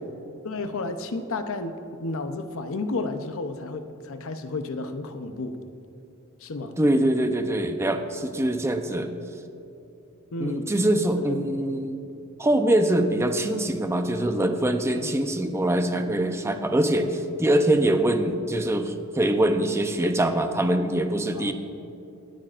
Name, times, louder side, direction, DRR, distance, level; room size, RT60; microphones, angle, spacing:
voice 1, 0.4-5.6 6.4-6.8 8.8-9.1 10.3-10.7 11.2-11.4 14.9-15.1 21.3-21.5, left 3 dB, 70° left, 9 dB, 0.7 m, -32 dB
voice 2, 6.8-9.1 10.4-12.0 12.4-21.5, right 1 dB, 10° right, 6 dB, 0.6 m, -23 dB
23.5 x 9.0 x 2.5 m, 2.8 s
head